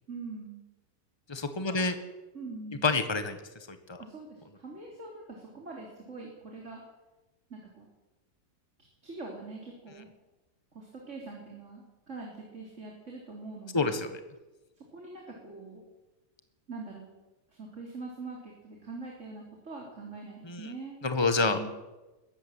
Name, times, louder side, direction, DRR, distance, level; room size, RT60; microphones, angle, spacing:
voice 1, 0.1-0.6 1.7-1.9 2.3-2.8 4.0-6.8 7.5-7.9 9.0-10.1 10.7-14.0 14.8-15.8 16.7-17.2 17.5-21.0 21.4-21.7, right 3 dB, 55° right, -1 dB, 4.0 m, -43 dB
voice 2, 1.3-1.9 2.8-3.4 3.7-4.0 13.7-14.1 20.5-20.6 21.0-21.6, left 3 dB, 20° left, 8 dB, 1.6 m, -27 dB
21.5 x 14.5 x 9.2 m, 1.1 s
omnidirectional pair, 1.5 m